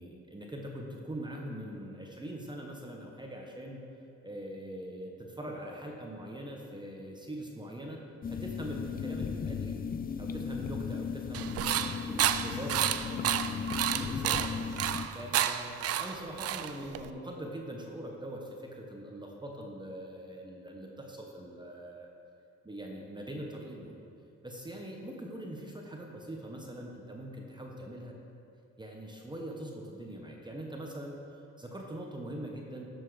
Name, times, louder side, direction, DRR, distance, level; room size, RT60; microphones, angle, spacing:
voice 1, 0.0-3.8 4.2-8.0 8.3-9.8 10.2-11.8 12.1-14.5 15.1-22.1 22.6-24.0 24.4-28.1 28.8-31.2 31.6-32.8, right 1 dB, 15° right, 0 dB, 1.0 m, -42 dB
sound 1, 8.2-15.1, left 6 dB, 30° left, 0.4 m, -36 dB
sound 2, 11.3-17.1, right 10 dB, 55° right, 0.4 m, -31 dB
13.0 x 4.5 x 4.8 m, 2.6 s
cardioid pair, 90°, 30 cm